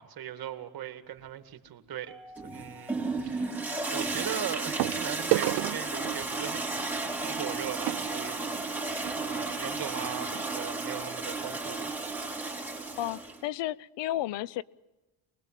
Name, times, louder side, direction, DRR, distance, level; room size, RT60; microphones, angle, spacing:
voice 1, 0.0-2.1 2.4-3.5 3.9-6.9 7.2-8.9 9.2-12.0, right 10 dB, 50° right, 2.2 m, -39 dB
sound 1, 1.2-1.5 3.2-3.3 4.8-9.2 10.0-10.1 10.3-10.5 11.0-11.1, right 18 dB, 70° right, 0.8 m, -34 dB
Mallet percussion, 2.1-4.5, left 1 dB, 25° right, 2.9 m, -54 dB
Toilet flush, 2.4-13.4, right 3 dB, 5° right, 3.7 m, -33 dB
voice 2, 12.9-14.6, left 14 dB, 65° left, 0.8 m, -32 dB
24.5 x 21.0 x 7.5 m
cardioid pair, 105°, 45 cm